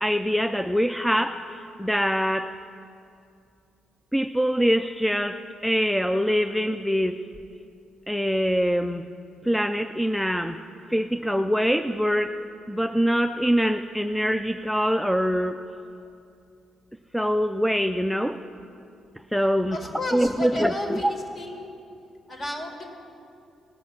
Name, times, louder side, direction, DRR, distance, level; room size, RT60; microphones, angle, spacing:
voice 1, 0.0-2.6 4.1-7.2 8.1-9.1 9.4-10.6 10.9-12.4 12.7-15.7 17.1-18.4 19.3-19.8 20.1-21.1, equal, ahead, 7 dB, 0.4 m, -24 dB
voice 2, 19.7-21.7 22.3-22.8, left 1 dB, 40° left, 2 dB, 2.0 m, -33 dB
18.5 x 6.4 x 6.0 m, 2.5 s
cardioid pair, 90°, 0 cm